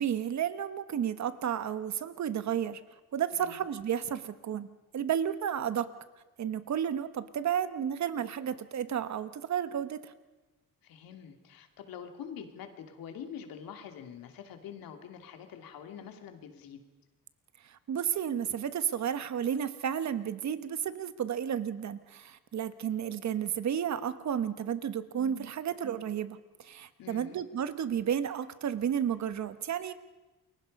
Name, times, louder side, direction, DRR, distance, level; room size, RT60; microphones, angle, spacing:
voice 1, 0.0-2.8 3.1-4.7 4.9-5.9 6.4-10.1 17.6-29.9, right 9 dB, 55° right, 12 dB, 1.3 m, -32 dB
voice 2, 10.8-16.8 27.0-27.4, left 8 dB, 90° left, 6 dB, 2.6 m, -45 dB
29.0 x 22.5 x 5.4 m, 1.1 s
cardioid pair, 125°, 34 cm